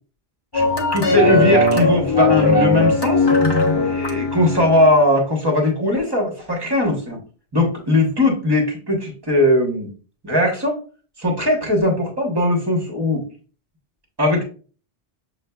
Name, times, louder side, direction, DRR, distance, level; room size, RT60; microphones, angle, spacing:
sound 1, 0.5-4.9, left 2 dB, 25° left, 0.7 m, -18 dB
voice 1, 0.5-3.3 3.8-7.2 7.5-9.9 10.2-10.8 11.2-13.2 14.2-14.4, left 1 dB, 25° right, 1 dB, 1.1 m, -19 dB
6.5 x 2.5 x 2.3 m, 0.39 s
omnidirectional pair, 1.1 m